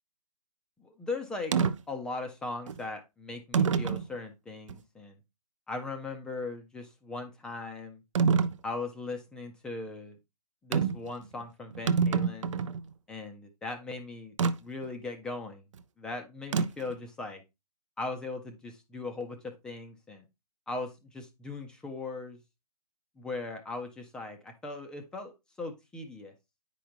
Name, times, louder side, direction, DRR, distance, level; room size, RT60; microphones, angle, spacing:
voice 1, 0.8-1.5 1.9-5.2 5.7-8.0 8.6-10.2 10.6-12.5 13.1-14.3 14.6-15.7 16.0-17.4 18.0-20.3 20.7-22.4 23.2-25.3 25.6-26.3, left 3 dB, 5° left, 4 dB, 0.5 m, -39 dB
sound 1, 1.5-1.8 2.7-2.8 3.5-4.1 4.7-4.8 8.2-8.6 10.7-11.1 11.4-11.5 11.7-12.8 14.4-14.6 16.5-16.9, right 6 dB, 50° right, 0.6 m, -26 dB
9.1 x 5.2 x 2.9 m, 0.23 s
figure-of-eight pair, 145°, 21 cm